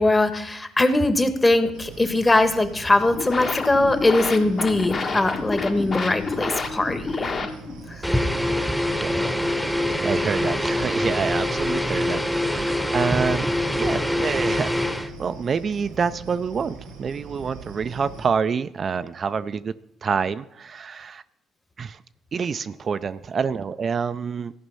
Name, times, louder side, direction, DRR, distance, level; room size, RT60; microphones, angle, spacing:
voice 1, 0.0-7.5, left 2 dB, 25° left, 9 dB, 1.2 m, -21 dB
sound 1, 1.7-18.3, right 4 dB, 85° right, 1.4 m, -42 dB
sound 2, 3.0-7.9, left 4 dB, 45° left, 1.5 m, -29 dB
sound 3, 8.0-15.1, left 1 dB, ahead, 0.9 m, -24 dB
voice 2, 9.8-19.7 20.0-21.2 21.8-22.0 22.3-24.5, right 6 dB, 45° right, 12 dB, 0.4 m, -27 dB
14.5 x 5.2 x 5.6 m, 0.81 s
hypercardioid pair, 60°, 0 cm